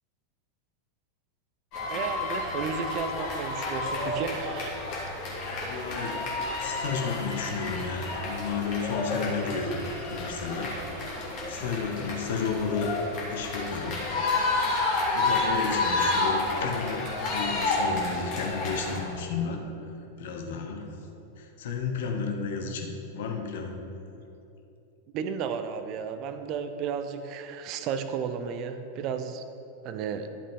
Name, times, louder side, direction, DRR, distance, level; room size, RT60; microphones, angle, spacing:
sound 1, 1.7-19.0, left 2 dB, 40° left, 2.3 m, -30 dB
voice 1, 1.9-4.7 25.1-29.4 29.8-30.3, right 6 dB, 40° right, 10 dB, 0.6 m, -33 dB
voice 2, 5.6-6.2 6.6-10.7 11.5-12.9 13.3-14.0 15.1-19.6 20.2-20.9 21.4-22.9 23.1-23.8, left 5 dB, 55° left, 3 dB, 1.1 m, -32 dB
11.5 x 7.3 x 3.7 m, 2.9 s
figure-of-eight pair, 90°, 0 cm